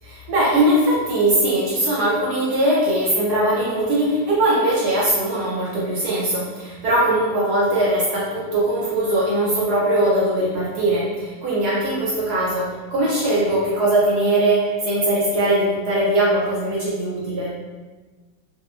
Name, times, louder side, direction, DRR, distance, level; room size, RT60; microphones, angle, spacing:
voice 1, 0.3-17.5, right 1 dB, 65° right, -7 dB, 1.1 m, -20 dB
4.3 x 2.2 x 2.4 m, 1.3 s
omnidirectional pair, 2.0 m